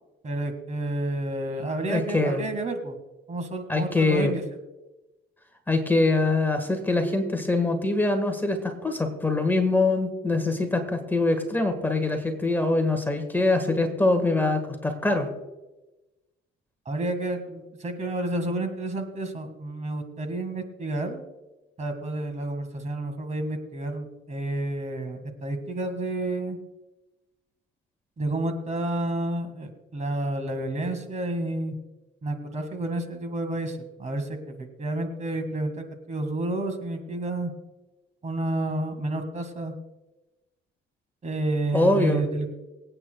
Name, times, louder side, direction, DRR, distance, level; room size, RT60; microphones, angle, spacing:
voice 1, 0.2-3.0 3.3-4.4 16.9-21.2 21.8-26.6 28.2-31.8 32.2-37.5 38.2-39.7 41.2-42.5, right 2 dB, 35° right, 7 dB, 1.9 m, -30 dB
voice 2, 1.9-2.4 3.7-4.3 5.7-15.3 41.7-42.2, left 2 dB, 10° left, 5 dB, 1.6 m, -24 dB
25.0 x 8.8 x 2.3 m, 1.1 s
cardioid pair, 125°, 21 cm